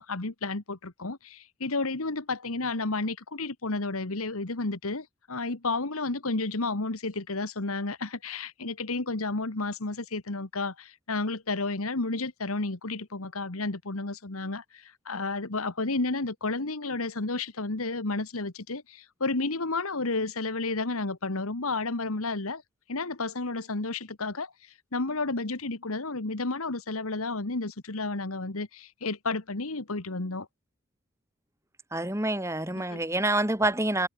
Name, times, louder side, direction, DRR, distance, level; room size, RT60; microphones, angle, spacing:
voice 1, 0.0-22.6 22.9-30.5 32.9-33.0, left 3 dB, 75° left, 1.7 m, -31 dB
voice 2, 31.9-34.1, right 1 dB, 10° right, 3.1 m, -27 dB
head